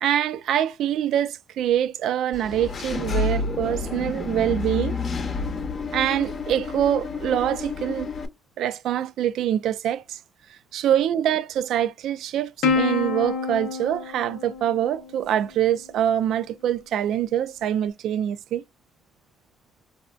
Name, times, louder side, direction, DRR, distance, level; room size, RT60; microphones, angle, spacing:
voice 1, 0.0-5.0 5.9-8.1 8.6-10.2 10.7-18.6, right 10 dB, 80° right, 0.3 m, -24 dB
Engine / Mechanisms, 2.3-8.3, left 4 dB, 45° left, 0.6 m, -29 dB
Plucked string instrument, 12.6-15.4, left 4 dB, 85° left, 0.7 m, -27 dB
4.1 x 2.6 x 2.2 m
cardioid pair, 90°, 0 cm